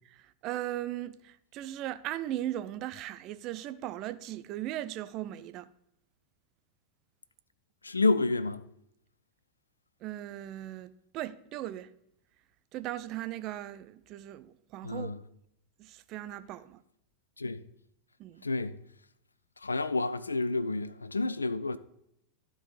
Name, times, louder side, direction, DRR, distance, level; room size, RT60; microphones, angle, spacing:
voice 1, 0.1-5.7 10.0-11.9 12.7-15.1 15.8-16.8 18.2-18.4, right 13 dB, 40° right, 0.5 m, -38 dB
voice 2, 7.8-8.6 14.8-15.2 17.4-17.6 18.4-18.8 19.6-21.8, left 3 dB, 80° left, 0.4 m, -29 dB
13.5 x 4.7 x 4.2 m
figure-of-eight pair, 90°, 0 cm